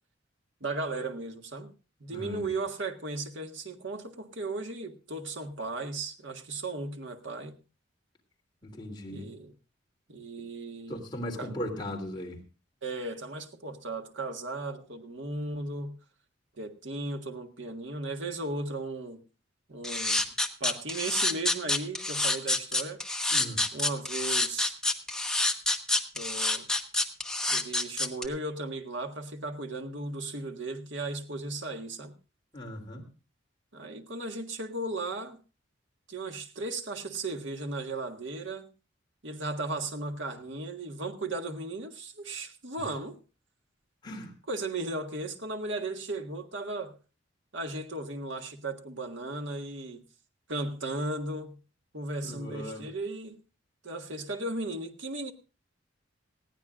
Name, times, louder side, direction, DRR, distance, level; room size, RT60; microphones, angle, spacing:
voice 1, 0.6-1.7 2.0-7.6 9.1-9.5 10.1-11.0 11.4-11.5 12.8-16.0 16.6-19.2 19.7-20.3 20.6-23.0 23.7-24.8 26.1-26.7 27.5-32.1 33.7-35.4 36.1-38.7 39.2-43.2 44.5-47.0 47.5-50.0 50.5-51.6 51.9-53.4 53.8-55.3, right 2 dB, 70° right, 1.6 m, -36 dB
voice 2, 2.1-2.5 8.6-9.3 10.9-12.4 23.3-23.6 32.5-33.1 42.8-42.9 44.0-44.3 52.2-52.8, left 1 dB, 25° left, 3.1 m, -38 dB
sound 1, 19.8-28.3, left 2 dB, 5° left, 1.0 m, -27 dB
20.0 x 15.0 x 2.5 m
head